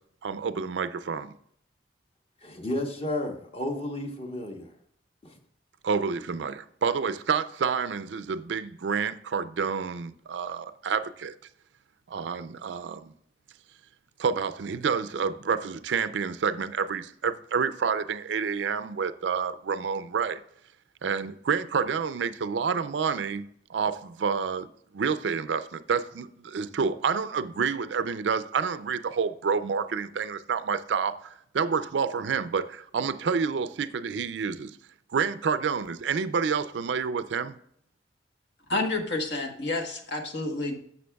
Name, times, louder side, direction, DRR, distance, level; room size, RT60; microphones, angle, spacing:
voice 1, 0.2-1.3 5.8-11.3 12.1-13.1 14.2-20.4 21.0-23.5 23.7-24.7 24.9-31.1 31.5-32.7 32.9-34.7 35.1-37.5, right 6 dB, 70° right, 0.4 m, -28 dB
voice 2, 2.4-4.7 5.2-5.3, left 1 dB, 35° left, 1.1 m, -32 dB
voice 3, 38.7-40.8, left 2 dB, 65° left, 1.2 m, -29 dB
11.5 x 7.3 x 2.3 m
head